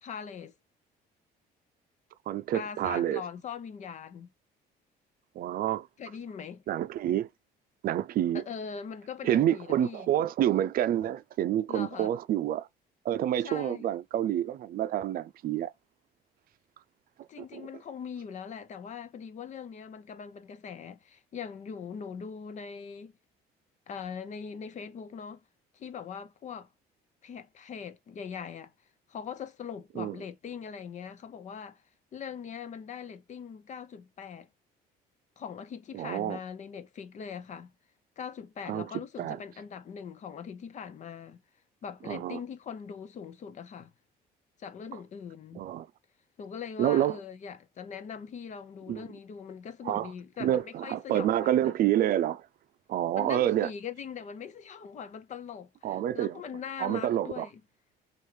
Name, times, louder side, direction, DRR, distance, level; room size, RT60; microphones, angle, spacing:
voice 1, 0.0-0.5 2.5-4.3 6.0-6.6 8.3-10.1 11.7-12.1 13.4-13.9 17.3-23.1 23.9-25.4 25.7-26.7 27.2-28.7 29.1-31.8 32.1-34.5 35.4-37.7 38.2-41.4 41.8-43.9 44.6-45.6 46.4-51.7 53.2-57.5, left 7 dB, 45° left, 0.7 m, -41 dB
voice 2, 2.3-3.2 5.4-5.9 6.7-7.3 7.8-8.4 9.2-12.7 13.0-15.7 17.5-17.7 30.0-30.2 35.9-36.4 38.7-39.4 42.0-42.4 45.6-45.9 46.8-47.2 48.9-49.0 49.8-50.1 50.4-52.4 52.9-53.7 55.8-56.4 56.8-57.5, right 12 dB, 60° right, 0.5 m, -28 dB
6.2 x 2.6 x 3.3 m
cardioid pair, 110°, 17 cm